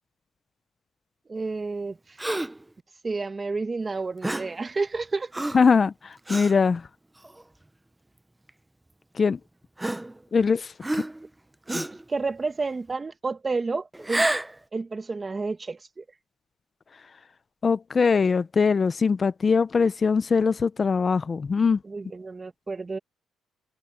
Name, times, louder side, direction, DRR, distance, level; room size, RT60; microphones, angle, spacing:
voice 1, 1.3-2.2 3.0-5.4 11.7-14.3 14.7-16.0 21.8-23.0, right 3 dB, 30° right, 1.5 m, -31 dB
Gasp, 2.2-2.6 4.2-4.6 5.3-5.7 6.3-6.5 7.2-7.4 8.5-8.6 9.8-10.4 10.8-11.3 11.7-12.0 13.9-14.6, right 1 dB, 10° right, 0.8 m, -29 dB
voice 2, 5.5-6.8 9.2-9.4 10.3-10.7 11.7-11.8 17.6-21.8, left 5 dB, 35° left, 0.7 m, -22 dB
cardioid pair, 90°, 0 cm